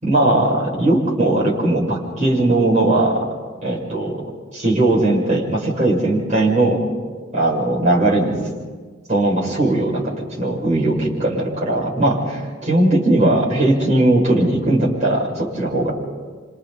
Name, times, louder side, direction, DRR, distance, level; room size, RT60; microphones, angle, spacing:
voice 1, 0.0-3.2 3.6-4.2 4.5-6.8 7.3-8.4 9.1-15.9, right 2 dB, 40° right, -5 dB, 6.7 m, -18 dB
28.0 x 27.0 x 4.3 m, 1.4 s
head